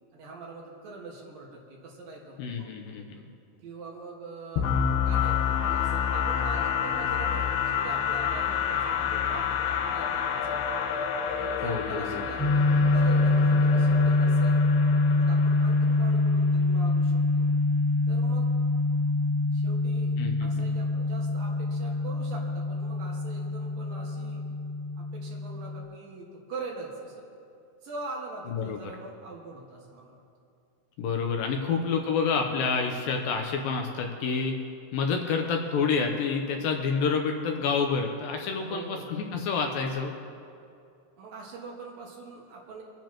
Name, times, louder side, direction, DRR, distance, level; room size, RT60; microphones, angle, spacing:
voice 1, 0.1-3.1 3.6-10.8 11.4-14.6 15.1-17.6 18.1-18.5 19.5-20.1 20.4-24.4 25.0-27.3 27.8-30.2 31.6-31.9 38.6-39.3 41.2-42.8, right 3 dB, 65° right, -2 dB, 3.2 m, -43 dB
voice 2, 2.4-3.3 11.6-12.3 20.2-20.7 28.5-28.8 31.0-34.5 34.9-40.1, left 5 dB, 75° left, 3 dB, 2.3 m, -28 dB
sound 1, 4.6-16.3, left 8 dB, 90° left, 2.9 m, -29 dB
sound 2, 12.4-25.8, left 2 dB, 20° left, 2.2 m, -25 dB
26.0 x 10.0 x 3.0 m, 2.5 s
omnidirectional pair, 4.6 m